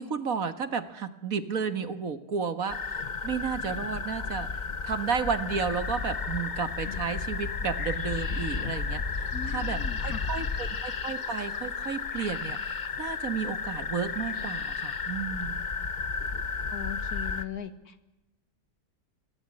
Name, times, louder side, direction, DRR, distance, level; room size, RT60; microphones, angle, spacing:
voice 1, 0.0-15.6, right 6 dB, 55° right, 11 dB, 2.0 m, -33 dB
sound 1, 2.7-17.4, left 5 dB, 35° left, 0.8 m, -33 dB
voice 2, 9.3-10.3 16.7-18.0, left 7 dB, 65° left, 11 dB, 2.2 m, -39 dB
25.5 x 17.0 x 9.8 m, 1.0 s
omnidirectional pair, 1.8 m